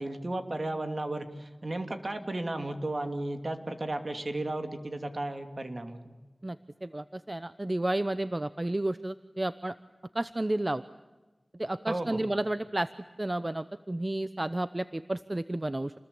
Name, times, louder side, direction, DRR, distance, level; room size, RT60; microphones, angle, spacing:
voice 1, 0.0-6.1 11.9-12.3, right 2 dB, 55° right, 7 dB, 2.8 m, -34 dB
voice 2, 6.4-9.7 10.1-10.8 11.5-12.9 13.2-15.9, right 1 dB, 35° right, 13 dB, 0.8 m, -31 dB
29.0 x 21.0 x 8.7 m, 1.2 s
wide cardioid pair, 45°, 0 cm